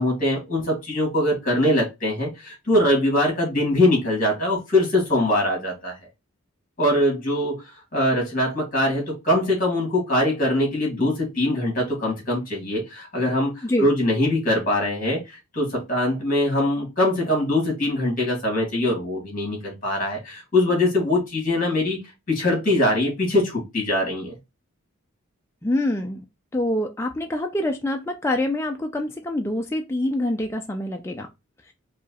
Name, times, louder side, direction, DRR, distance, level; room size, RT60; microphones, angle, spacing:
voice 1, 0.0-5.9 6.8-22.0 22.3-24.3, left 1 dB, 40° left, 2.1 m, -22 dB
voice 2, 25.6-26.2 26.5-31.3, left 1 dB, 10° left, 0.3 m, -25 dB
4.8 x 2.3 x 2.7 m
head